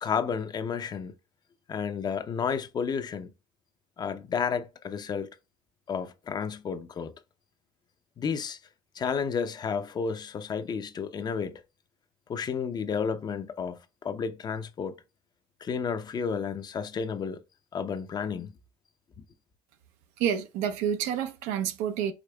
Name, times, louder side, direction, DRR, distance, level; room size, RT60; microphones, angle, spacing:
voice 1, 0.0-1.1 1.7-3.3 4.0-5.3 5.9-7.1 8.2-8.6 9.0-11.6 12.3-15.0 15.6-17.4 17.7-18.5, left 6 dB, 35° left, 0.6 m, -31 dB
voice 2, 20.2-22.1, right 9 dB, 85° right, 0.7 m, -28 dB
5.0 x 4.1 x 2.3 m
cardioid pair, 105°, 12 cm